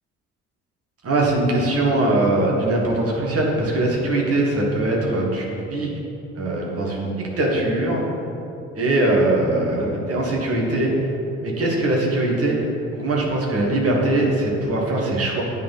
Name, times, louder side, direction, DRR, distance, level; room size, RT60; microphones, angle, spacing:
voice 1, 1.0-6.0 6.3-8.1 8.7-10.9 11.4-12.7 13.0-15.5, right 2 dB, 35° right, -2 dB, 1.6 m, -21 dB
9.3 x 4.1 x 4.2 m, 2.8 s
figure-of-eight pair, 45°, 38 cm